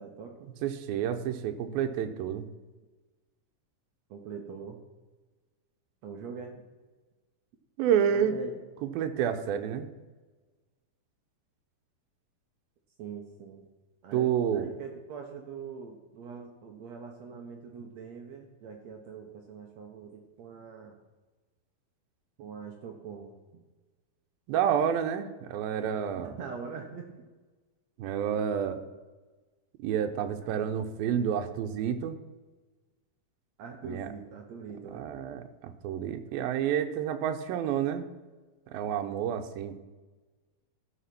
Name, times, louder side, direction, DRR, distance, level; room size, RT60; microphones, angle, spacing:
voice 1, 0.0-0.5 4.1-4.8 6.0-6.6 8.1-8.5 13.0-13.7 14.0-20.9 22.4-23.4 26.1-27.1 33.6-35.1, right 5 dB, 70° right, 2 dB, 1.7 m, -43 dB
voice 2, 0.6-2.5 7.8-8.3 8.8-9.9 14.1-14.7 24.5-26.3 28.0-28.8 29.8-32.2 33.8-34.1 34.9-38.1 38.7-39.8, right 9 dB, 90° right, 7 dB, 2.6 m, -29 dB
13.5 x 5.8 x 5.9 m, 1.3 s
omnidirectional pair, 4.1 m